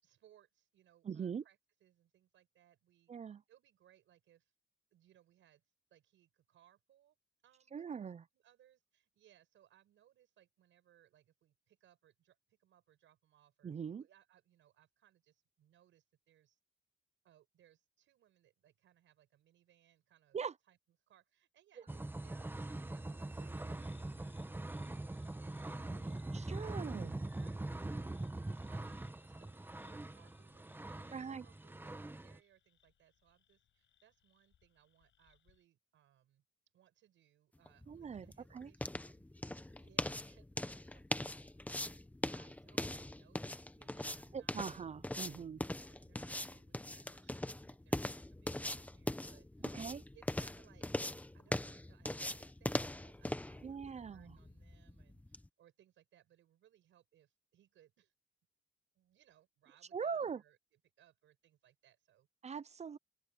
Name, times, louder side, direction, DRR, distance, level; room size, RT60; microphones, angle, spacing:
voice 1, 0.0-4.5 4.9-7.2 7.4-16.6 17.2-20.4 20.6-20.8 21.1-28.2 28.4-36.4 36.7-41.5 42.3-44.6 45.5-49.8 50.1-50.9 51.3-58.1 58.9-60.6 61.0-62.3, right 11 dB, 75° right, 6.2 m, -69 dB
voice 2, 1.0-1.4 3.1-3.4 7.7-8.2 13.6-14.0 20.3-20.5 26.3-27.2 31.1-31.5 37.9-38.3 38.5-38.7 44.3-45.6 49.6-50.0 53.6-54.4 59.9-60.4 62.4-63.0, right 6 dB, 35° right, 0.5 m, -42 dB
sound 1, 21.9-32.4, right 2 dB, 10° right, 1.1 m, -43 dB
sound 2, 23.5-35.6, left 10 dB, 70° left, 7.7 m, -71 dB
sound 3, 37.7-55.5, left 1 dB, 5° left, 1.1 m, -41 dB
open air
cardioid pair, 90°, 20 cm